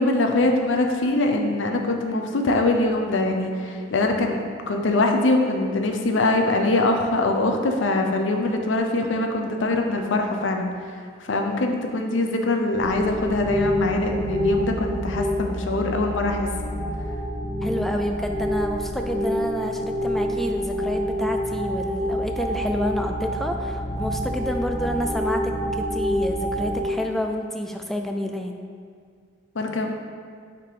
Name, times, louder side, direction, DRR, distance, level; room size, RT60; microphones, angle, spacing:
voice 1, 0.0-4.4 4.7-10.7 11.3-16.7 29.6-29.9, left 2 dB, 80° left, 3 dB, 0.6 m, -23 dB
sound 1, 12.7-26.8, equal, 40° left, 0.6 m, -27 dB
voice 2, 17.6-28.6, equal, ahead, 3 dB, 0.3 m, -29 dB
5.7 x 3.7 x 4.8 m, 2.1 s
head